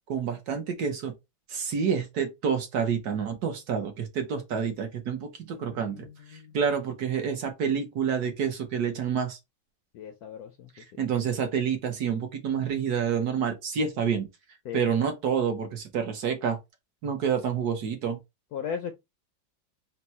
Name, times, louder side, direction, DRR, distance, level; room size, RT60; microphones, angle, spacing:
voice 1, 0.1-1.1 1.5-9.4 10.7-14.3 14.7-16.6 17.0-18.2, right 7 dB, 60° right, 1.2 m, -28 dB
voice 2, 5.5-6.5 9.9-11.0 14.6-14.9 18.5-18.9, left 7 dB, 70° left, 0.9 m, -38 dB
4.4 x 2.1 x 4.1 m
omnidirectional pair, 2.1 m